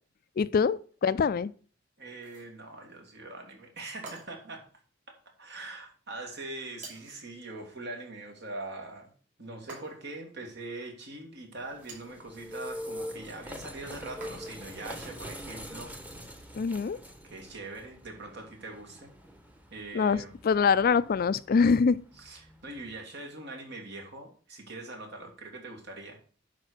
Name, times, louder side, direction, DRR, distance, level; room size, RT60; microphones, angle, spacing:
voice 1, 0.4-1.5 16.6-17.0 19.9-22.0, left 5 dB, 50° left, 0.4 m, -24 dB
voice 2, 2.0-4.6 5.1-9.1 9.4-15.9 16.2-16.3 17.2-19.1 19.7-20.4 22.2-26.2, right 2 dB, 60° right, 2.5 m, -42 dB
sound 1, 2.1-2.6 4.0-4.6 6.8-7.3 9.7-10.2 11.7-12.2 14.2-14.7, right 3 dB, 45° right, 5.1 m, -48 dB
sound 2, 11.6-23.0, equal, 10° right, 1.1 m, -45 dB
10.5 x 4.3 x 6.6 m
head